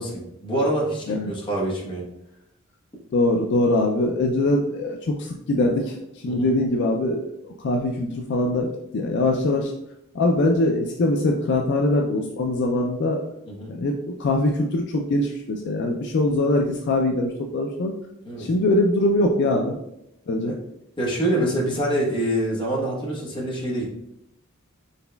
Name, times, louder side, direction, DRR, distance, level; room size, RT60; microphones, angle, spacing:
voice 1, 0.0-2.1 6.3-6.4 13.5-13.8 18.2-18.5 20.5-20.6 21.0-23.9, right 1 dB, 25° left, -4 dB, 1.0 m, -25 dB
voice 2, 3.1-9.7 10.1-13.3 13.7-13.9 14.2-17.9 18.4-19.8 20.3-20.6, left 2 dB, 55° left, 2 dB, 0.4 m, -22 dB
4.0 x 3.9 x 2.2 m, 0.82 s
head